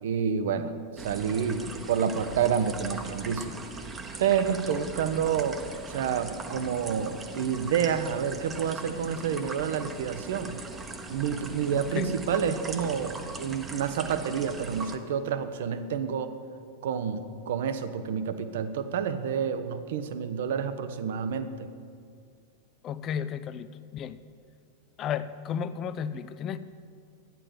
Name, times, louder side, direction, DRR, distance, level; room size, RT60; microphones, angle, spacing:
voice 1, 0.0-3.5 4.2-5.6 5.9-10.6 11.1-16.3 16.8-21.7, right 7 dB, 55° right, 11 dB, 0.7 m, -29 dB
sound 1, 1.0-15.0, right 3 dB, 20° right, 1.0 m, -40 dB
voice 2, 11.7-12.1 22.8-23.7 23.9-24.2 25.0-26.6, left 8 dB, 30° left, 14 dB, 0.5 m, -33 dB
12.0 x 9.9 x 5.0 m, 2.2 s
figure-of-eight pair, 90°, 0 cm